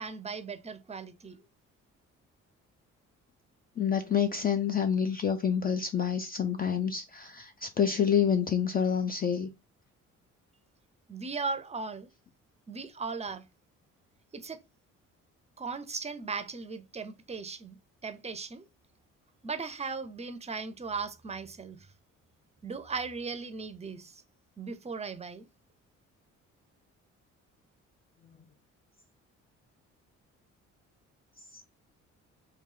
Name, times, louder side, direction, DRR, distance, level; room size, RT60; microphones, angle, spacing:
voice 1, 0.0-1.4 11.1-12.1 12.7-13.5 14.3-14.6 15.6-18.6 19.4-21.9 22.6-24.2 24.6-25.5, right 4 dB, 20° right, 0.5 m, -37 dB
voice 2, 3.8-9.5, left 8 dB, 30° left, 0.4 m, -28 dB
3.1 x 2.3 x 3.7 m
cardioid pair, 90°, 30 cm